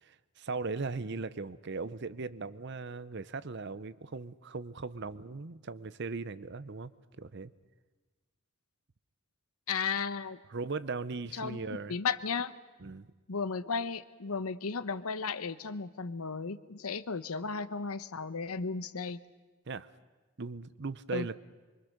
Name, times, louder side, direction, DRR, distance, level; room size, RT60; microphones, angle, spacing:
voice 1, 0.0-6.9 7.2-7.5 10.5-12.0 12.8-13.1 19.7-19.9 20.4-21.4, right 4 dB, 55° right, 16 dB, 0.7 m, -38 dB
voice 2, 9.7-10.4 11.3-11.6 11.9-12.5 13.3-19.2 21.1-21.3, left 5 dB, 85° left, 14 dB, 0.9 m, -34 dB
24.0 x 23.5 x 6.6 m, 1.3 s
head